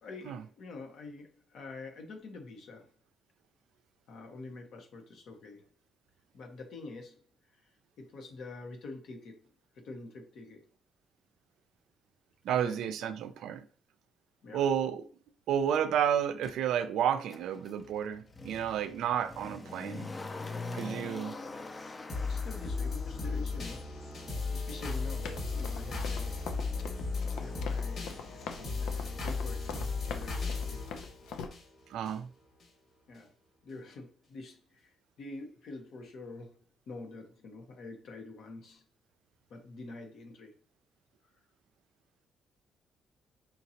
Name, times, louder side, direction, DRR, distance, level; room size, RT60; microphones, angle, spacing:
voice 1, 0.0-2.9 4.1-5.7 6.3-7.2 7.5-9.5 9.7-10.7 12.5-13.2 14.4-14.7 21.3-21.6 22.2-23.9 24.5-26.4 26.8-26.9 27.4-30.9 33.1-33.3 33.6-36.6 36.9-38.8 39.5-40.6, left 3 dB, 70° left, 1.2 m, -47 dB
voice 2, 12.4-13.6 14.5-15.1 15.5-20.1 20.7-21.4 31.9-32.3, right 9 dB, 80° right, 0.4 m, -31 dB
Motor vehicle (road), 16.4-16.5 17.3-30.2 30.5-30.6, left 3 dB, 30° left, 0.6 m, -46 dB
sound 1, 22.1-32.1 32.6-32.7, left 4 dB, 55° left, 2.0 m, -35 dB
Run, 25.3-31.5, left 6 dB, 85° left, 0.6 m, -43 dB
5.6 x 2.8 x 2.9 m
cardioid pair, 90°, 0 cm